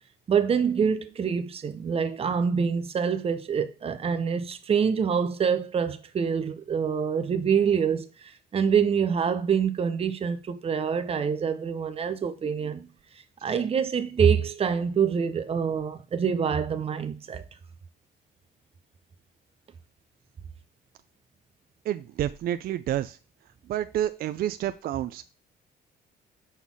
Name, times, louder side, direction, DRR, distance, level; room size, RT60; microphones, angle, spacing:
voice 1, 0.3-12.9 13.4-17.4, right 7 dB, 35° right, 0.8 m, -26 dB
voice 2, 21.9-23.2 23.7-25.3, right 12 dB, 60° right, 0.4 m, -29 dB
5.6 x 3.9 x 6.1 m
cardioid pair, 120°, 17 cm